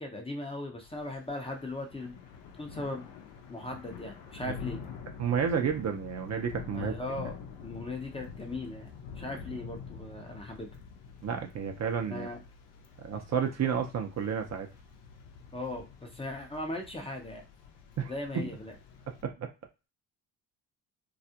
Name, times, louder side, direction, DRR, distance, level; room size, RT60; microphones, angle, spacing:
voice 1, 0.0-2.2 2.6-3.1 3.5-4.8 6.7-7.4 7.6-8.9 9.2-10.7 12.1-12.4 15.5-17.4 18.1-18.7, left 2 dB, 15° left, 2 dB, 0.6 m, -38 dB
Thunder / Rain, 0.8-19.2, left 6 dB, 75° left, 0.7 m, -47 dB
voice 2, 5.2-6.9 11.2-12.3 13.0-14.7 18.0-18.5 19.2-19.5, right 7 dB, 40° right, 4 dB, 0.6 m, -31 dB
2.3 x 2.0 x 2.7 m, 0.28 s
hypercardioid pair, 60°, 44 cm